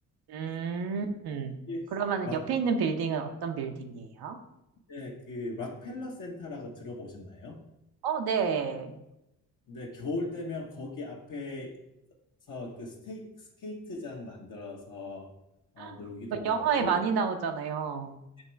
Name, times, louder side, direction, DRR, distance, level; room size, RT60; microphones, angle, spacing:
voice 1, 0.3-1.6 1.9-4.4 8.0-9.0 15.8-16.0 16.3-18.1, right 6 dB, 70° right, 4 dB, 0.8 m, -30 dB
voice 2, 4.9-7.6 9.7-11.8 12.5-15.3 15.7-16.9, left 2 dB, 50° left, -2 dB, 1.3 m, -39 dB
7.0 x 3.0 x 4.5 m, 0.87 s
supercardioid pair, 55°, 39 cm